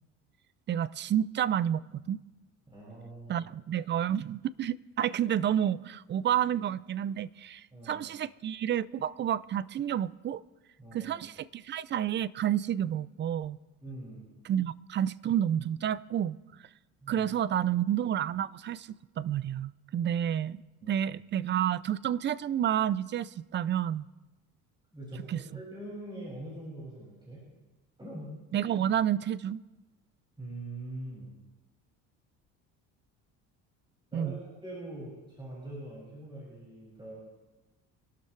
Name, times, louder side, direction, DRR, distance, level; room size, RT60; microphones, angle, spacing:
voice 1, 0.7-2.2 3.3-10.4 10.9-13.6 14.4-16.4 17.1-20.6 20.9-24.1 25.3-25.4 28.5-29.6 34.1-34.4, right 10 dB, 35° right, 0.4 m, -30 dB
voice 2, 2.7-3.5 7.7-8.0 10.8-11.2 13.8-14.3 17.0-17.3 20.8-21.0 24.9-27.5 28.0-28.4 30.4-31.3 34.1-37.2, right 1 dB, 15° right, 6.0 m, -43 dB
26.0 x 12.5 x 3.3 m
cardioid pair, 105°, 32 cm